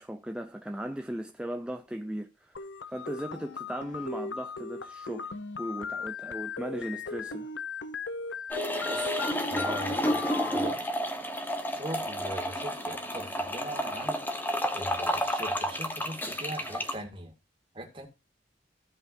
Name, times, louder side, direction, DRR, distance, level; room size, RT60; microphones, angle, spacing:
voice 1, 0.0-2.5 2.9-5.3 5.6-7.5, equal, 5° right, 0.5 m, -37 dB
sound 1, 2.5-10.6, left 4 dB, 85° left, 0.8 m, -38 dB
sound 2, 8.5-16.9, equal, 10° left, 1.2 m, -31 dB
voice 2, 9.5-10.2 10.5-10.9 11.7-14.2 14.7-17.3 17.7-18.1, right 1 dB, 30° right, 2.1 m, -40 dB
16.0 x 5.5 x 2.7 m
head